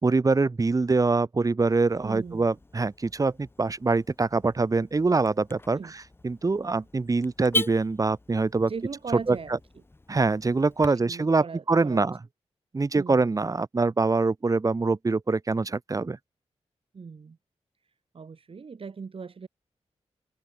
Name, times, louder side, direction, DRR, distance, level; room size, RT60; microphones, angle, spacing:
voice 1, 0.0-5.8 6.2-8.7 9.3-9.4 10.1-12.2 12.7-16.2, right 3 dB, 30° right, 1.3 m, -24 dB
Car / Alarm, 1.7-10.9, left 2 dB, 20° left, 1.5 m, -39 dB
voice 2, 2.0-2.5 5.8-5.9 8.6-9.6 10.8-12.1 12.9-13.2 16.9-17.4 18.1-19.5, right 5 dB, 55° right, 2.9 m, -39 dB
wide cardioid pair, 120°, 11 cm